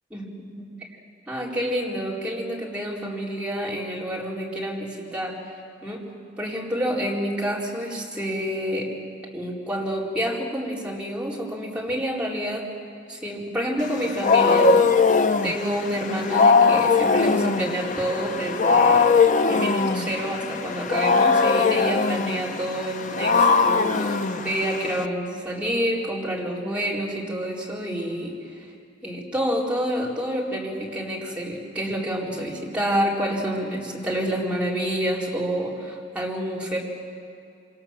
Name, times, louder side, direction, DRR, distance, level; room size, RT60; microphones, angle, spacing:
voice 1, 0.1-0.9 1.3-5.4 5.8-6.1 6.4-8.9 9.3-12.7 13.1-28.4 29.0-36.8, equal, 5° right, -5 dB, 4.4 m, -28 dB
Wild animals, 13.8-25.1, left 4 dB, 45° left, 0.8 m, -20 dB
27.0 x 26.5 x 7.4 m, 2.4 s
head